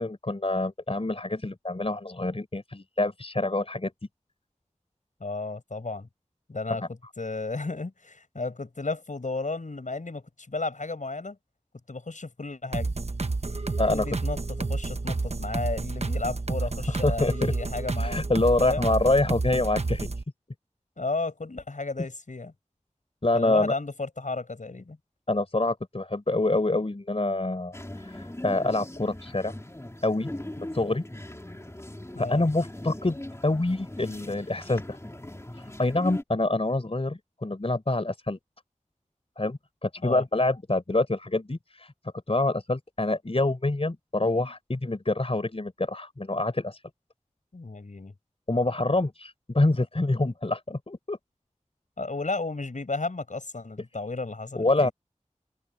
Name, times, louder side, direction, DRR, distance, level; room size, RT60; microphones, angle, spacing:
voice 1, 0.0-3.9 13.8-14.0 17.0-17.5 18.0-20.1 23.2-23.7 25.3-27.8 28.2-29.5 30.0-30.3 30.6-31.0 32.2-33.2 33.4-35.0 35.8-38.4 39.4-41.9 42.3-46.8 48.5-51.2 54.5-54.9, left 2 dB, 50° left, 4.1 m, -26 dB
voice 2, 5.2-6.1 6.5-11.4 11.9-12.9 13.8-18.2 18.6-18.9 21.0-22.5 23.3-25.0 32.1-32.4 40.0-40.2 47.5-48.1 52.0-54.9, left 3 dB, 85° left, 7.0 m, -33 dB
sound 1, 12.7-20.2, right 3 dB, 60° right, 1.0 m, -30 dB
sound 2, 27.7-36.2, left 1 dB, 20° left, 3.5 m, -40 dB
open air
wide cardioid pair, 55°, 13 cm